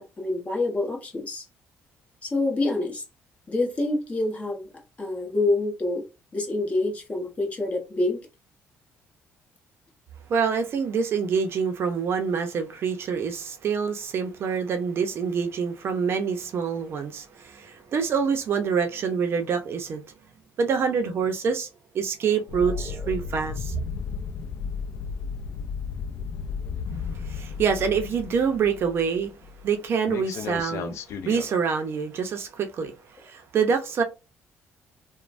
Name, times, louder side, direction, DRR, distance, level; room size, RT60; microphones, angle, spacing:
voice 1, 0.0-1.5 2.2-3.0 3.5-4.7 5.0-6.1 6.3-8.2, left 2 dB, 25° left, 1.1 m, -26 dB
voice 2, 10.3-20.0 20.6-21.7 21.9-23.7 27.2-29.3 29.6-31.0 31.3-32.9 33.2-34.0, right 6 dB, 55° right, 0.5 m, -26 dB
sound 1, 22.5-29.7 30.1-31.5, left 6 dB, 65° left, 0.4 m, -34 dB
3.0 x 2.1 x 2.5 m
cardioid pair, 105°, 5 cm